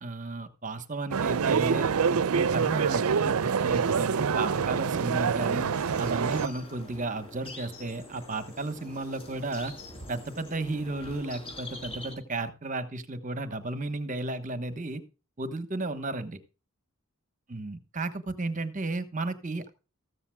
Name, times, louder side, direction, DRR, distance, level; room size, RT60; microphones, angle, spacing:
voice 1, 0.0-5.7 6.0-9.7 10.1-15.0 15.4-16.4 17.5-19.7, right 2 dB, 35° right, 10 dB, 1.2 m, -34 dB
sound 1, 1.1-6.5, right 6 dB, 80° right, 0.5 m, -26 dB
sound 2, 5.0-12.1, left 1 dB, 25° left, 5.3 m, -45 dB
14.5 x 14.0 x 2.3 m, 0.32 s
head